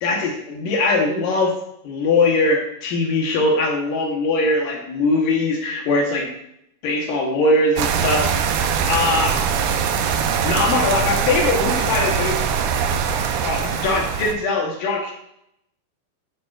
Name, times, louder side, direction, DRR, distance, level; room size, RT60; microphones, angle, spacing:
voice 1, 0.0-1.5 1.8-6.3 6.8-9.4 10.0-12.4 13.3-15.1, left 2 dB, 70° left, 0 dB, 2.1 m, -21 dB
sound 1, 7.8-14.3, right 7 dB, 80° right, 2.8 m, -22 dB
12.5 x 7.9 x 2.5 m, 0.77 s
omnidirectional pair, 5.5 m